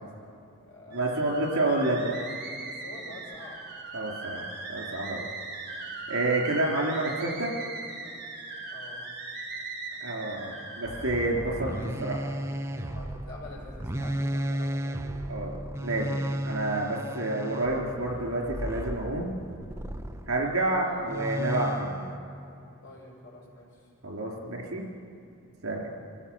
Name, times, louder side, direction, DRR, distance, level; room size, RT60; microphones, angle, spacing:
voice 1, 0.0-1.6 2.6-3.6 8.7-9.1 10.0-10.6 12.8-15.0 20.8-21.1 22.8-23.8 24.2-24.4 25.7-25.8, left 2 dB, 55° left, -3 dB, 6.3 m, -47 dB
sound 1, 0.9-11.1, right 3 dB, 50° right, 4.7 m, -39 dB
voice 2, 0.9-2.2 3.9-5.3 6.1-7.5 10.0-11.7 12.0-12.3 15.3-19.3 20.3-22.0 24.0-24.8 25.6-25.9, right 2 dB, 85° right, 0 dB, 4.0 m, -29 dB
sound 2, 10.9-20.4 21.1-22.2, right 1 dB, 15° right, 0.7 m, -34 dB
24.0 x 15.5 x 7.3 m, 2.5 s
head